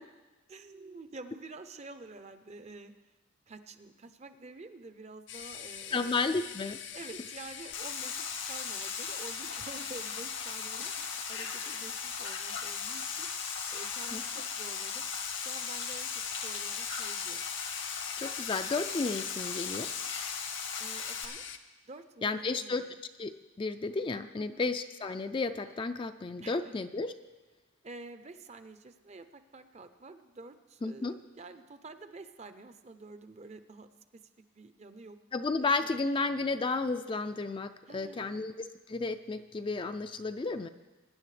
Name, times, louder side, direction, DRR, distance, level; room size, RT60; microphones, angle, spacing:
voice 1, 0.5-2.9 3.5-6.1 6.9-13.3 13.7-15.1 15.4-17.4 20.8-21.4 21.9-22.9 24.4-24.6 26.4-26.7 27.8-34.2 34.5-35.2 35.8-35.9 37.9-38.5, right 3 dB, 35° right, 10 dB, 0.6 m, -49 dB
sound 1, 5.3-21.6, left 9 dB, 65° left, 0.6 m, -44 dB
voice 2, 5.9-6.8 11.7-11.8 14.1-14.2 18.2-19.9 22.2-22.8 23.2-23.3 23.6-27.1 30.8-31.1 35.3-40.7, left 3 dB, 25° left, 8 dB, 0.3 m, -32 dB
sound 2, 7.7-21.2, left 6 dB, 90° left, 1.8 m, -38 dB
21.5 x 10.0 x 3.3 m, 1.2 s
head